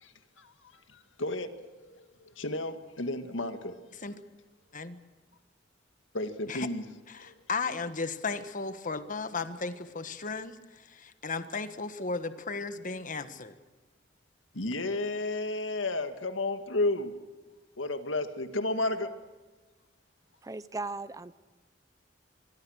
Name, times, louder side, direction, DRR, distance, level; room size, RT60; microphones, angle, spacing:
voice 1, 2.4-3.7 6.1-6.8 7.3-7.4 14.5-17.1 17.8-19.1, left 2 dB, 85° left, 2.0 m, -32 dB
voice 2, 7.1-13.5, left 4 dB, 45° left, 1.5 m, -35 dB
voice 3, 20.4-21.4, right 3 dB, 20° right, 0.6 m, -37 dB
25.0 x 23.0 x 6.5 m
head